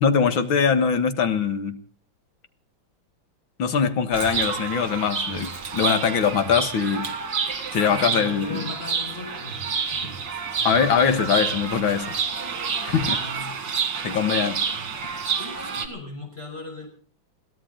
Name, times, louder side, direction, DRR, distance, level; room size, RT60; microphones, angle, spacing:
voice 1, 0.0-1.8 3.6-7.1 7.7-8.7 10.6-12.2 12.8-13.2 14.0-14.6, left 6 dB, 85° left, 10 dB, 2.3 m, -22 dB
Chirp tweet, 4.1-15.9, right 6 dB, 65° right, 2.5 m, -29 dB
voice 2, 7.8-9.6 9.9-10.2 13.0-13.6 14.8-16.9, left 2 dB, 30° left, 1 dB, 6.2 m, -38 dB
22.0 x 16.5 x 3.9 m, 0.43 s
omnidirectional pair, 2.1 m